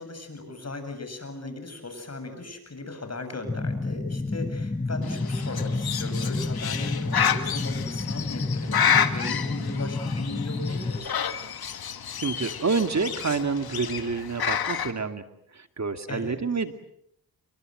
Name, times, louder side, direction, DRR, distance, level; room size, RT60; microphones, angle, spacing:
voice 1, 0.0-11.2 16.1-16.4, left 2 dB, 45° left, 8 dB, 7.6 m, -37 dB
sound 1, 3.5-11.0, left 2 dB, 15° left, 1.2 m, -30 dB
Bird, 5.0-14.9, left 8 dB, 80° left, 2.0 m, -29 dB
voice 2, 12.2-15.2 15.5-16.7, right 4 dB, 50° right, 8 dB, 2.4 m, -28 dB
30.0 x 23.5 x 7.9 m, 0.74 s
cardioid pair, 60°, 36 cm